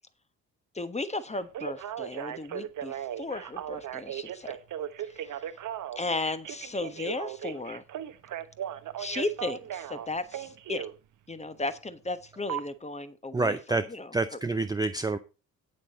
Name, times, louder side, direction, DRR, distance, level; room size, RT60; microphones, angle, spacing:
voice 1, 0.7-4.6 5.0-5.6 5.9-7.8 9.0-10.9 11.3-14.1, left 2 dB, 15° left, 1.2 m, -35 dB
Telephone, 1.3-10.9 12.5-12.6, right 10 dB, 45° right, 1.1 m, -37 dB
voice 2, 13.3-13.8 14.1-15.2, right 3 dB, 10° right, 0.6 m, -27 dB
9.2 x 8.8 x 4.2 m
figure-of-eight pair, 45°, 42 cm